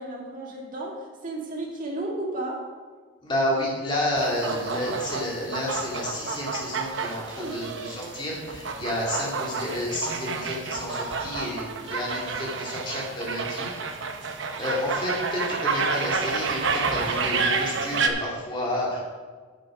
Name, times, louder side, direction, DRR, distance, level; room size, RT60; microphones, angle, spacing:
voice 1, 0.0-2.7 7.4-7.6, right 2 dB, 40° right, -1 dB, 1.9 m, -33 dB
voice 2, 3.2-13.7 14.2-19.0, left 1 dB, 25° left, -4 dB, 2.5 m, -30 dB
sound 1, 4.2-18.1, right 4 dB, 60° right, 0.8 m, -30 dB
9.2 x 7.7 x 4.9 m, 1.5 s
head